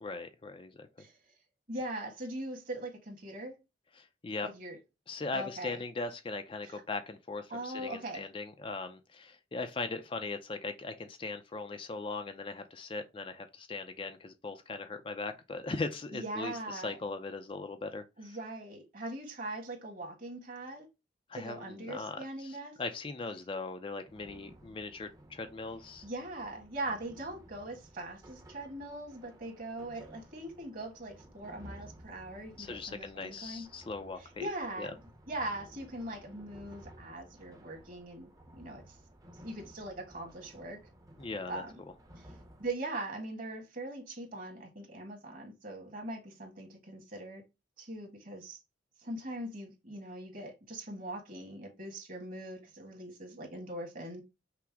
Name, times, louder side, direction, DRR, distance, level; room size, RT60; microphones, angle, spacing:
voice 1, 0.0-0.9 4.0-4.5 5.1-18.4 21.3-26.1 32.6-34.5 34.8-34.9 41.2-41.6, left 3 dB, 30° left, 0.4 m, -39 dB
voice 2, 1.7-3.6 4.4-4.8 5.3-5.8 6.6-6.8 7.5-8.3 16.1-17.0 18.2-20.9 21.3-22.8 26.0-33.7 34.2-35.0 35.3-39.0 39.4-40.8 41.5-41.8 42.2-47.4 47.8-48.6 49.0-54.2, right 1 dB, 45° right, 1.7 m, -41 dB
sound 1, 24.1-42.7, right 1 dB, 20° right, 0.8 m, -55 dB
5.8 x 2.1 x 3.5 m
head